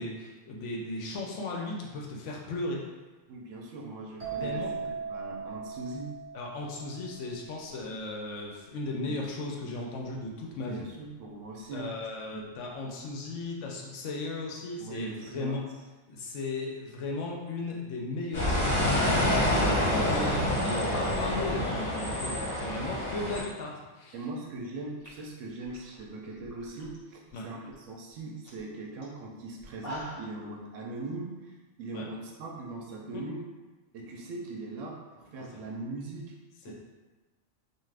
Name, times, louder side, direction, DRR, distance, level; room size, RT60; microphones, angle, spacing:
voice 1, 0.0-2.8 4.4-4.7 6.3-10.8 11.7-15.6 16.1-24.1 27.3-27.4 31.9-32.1 33.1-33.2 36.6-36.7, left 2 dB, 75° left, -1 dB, 0.9 m, -36 dB
voice 2, 3.3-4.7 5.0-6.1 9.1-9.2 10.7-12.5 14.8-15.6 24.1-33.4 33.9-36.3 36.6-36.7, right 2 dB, 80° right, -1 dB, 0.9 m, -40 dB
sound 1, 4.2-7.8, right 6 dB, 40° right, 0.6 m, -39 dB
sound 2, 18.3-23.4, left 1 dB, 45° left, 1.0 m, -27 dB
sound 3, 25.0-27.0 27.3-27.7 28.1-28.2 28.4-28.6 29.0-29.1 29.6-30.4, equal, 20° left, 0.6 m, -44 dB
2.5 x 2.4 x 3.2 m, 1.2 s
omnidirectional pair, 1.3 m